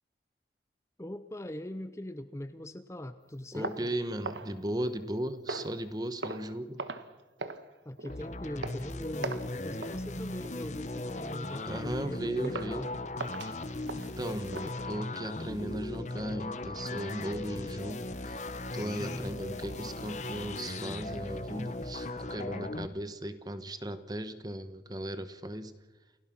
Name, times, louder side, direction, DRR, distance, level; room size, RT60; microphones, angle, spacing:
voice 1, 1.0-3.9 7.8-12.9 19.0-19.4, left 1 dB, 15° left, 10 dB, 0.7 m, -41 dB
voice 2, 3.5-6.8 11.7-12.9 13.9-25.8, right 1 dB, 20° right, 11 dB, 1.1 m, -37 dB
sound 1, 3.6-5.1 5.5-5.8 6.2-6.5 6.8-7.1 7.4-7.7 8.0-8.2 8.6-8.8 9.2-9.5 9.8-10.0 10.4-10.7 11.1-11.3 11.8-11.9 12.4-12.8 13.2-14.7, right 3 dB, 80° right, 1.4 m, -40 dB
sound 2, 8.1-22.9, left 2 dB, 40° left, 1.0 m, -38 dB
29.0 x 16.5 x 6.1 m, 1.1 s
head